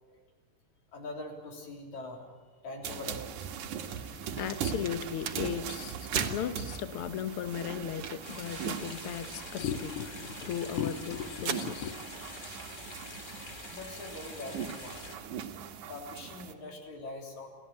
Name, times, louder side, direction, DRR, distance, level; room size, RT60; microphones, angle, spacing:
voice 1, 0.9-2.3 2.6-3.5 13.7-15.0 15.9-17.5, left 2 dB, 60° left, 4.7 m, -43 dB
sound 1, 2.8-16.5, right 8 dB, 65° right, 2.6 m, -40 dB
voice 2, 3.9-12.0, left 9 dB, 80° left, 1.2 m, -36 dB
sound 2, 4.1-11.5, right 7 dB, 50° right, 2.1 m, -42 dB
sound 3, 8.2-15.2, left 2 dB, 25° left, 2.2 m, -45 dB
28.5 x 16.5 x 8.4 m
omnidirectional pair, 3.9 m